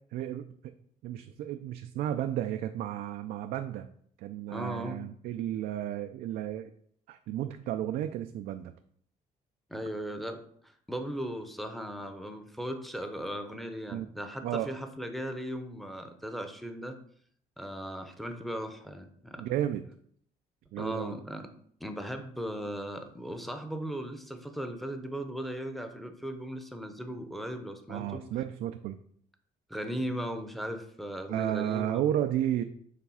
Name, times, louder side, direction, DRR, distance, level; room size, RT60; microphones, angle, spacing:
voice 1, 0.1-0.7 1.0-3.9 4.2-6.7 7.1-8.7 13.9-14.1 14.4-14.7 19.4-19.8 20.7-21.2 27.9-29.0 31.3-32.6, right 11 dB, 75° right, 7 dB, 0.4 m, -33 dB
voice 2, 4.5-5.0 9.7-17.0 17.6-19.4 20.8-21.5 21.8-28.2 29.7-32.0, equal, ahead, 6 dB, 0.8 m, -37 dB
7.2 x 3.4 x 5.6 m, 0.63 s
cardioid pair, 135°, 15 cm